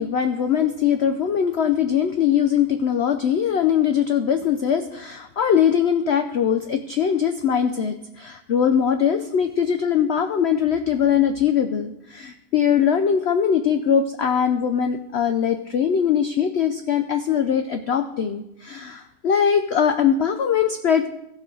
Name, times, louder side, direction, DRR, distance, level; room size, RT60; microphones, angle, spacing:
voice 1, 0.0-21.1, left 8 dB, 80° left, 8 dB, 0.6 m, -21 dB
15.5 x 7.2 x 3.8 m, 0.86 s
omnidirectional pair, 1.8 m